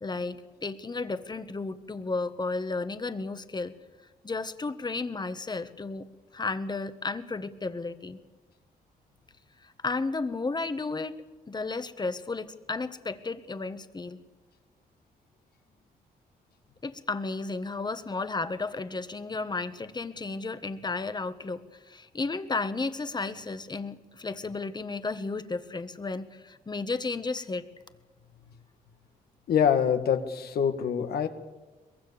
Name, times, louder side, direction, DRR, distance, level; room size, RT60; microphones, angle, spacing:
voice 1, 0.0-3.7 4.2-6.1 6.3-8.2 9.6-14.2 16.8-27.7, left 3 dB, 25° left, 10 dB, 1.5 m, -33 dB
voice 2, 29.5-31.3, left 8 dB, 75° left, 7 dB, 1.9 m, -25 dB
23.5 x 22.0 x 7.1 m, 1.2 s
cardioid pair, 90°, 16 cm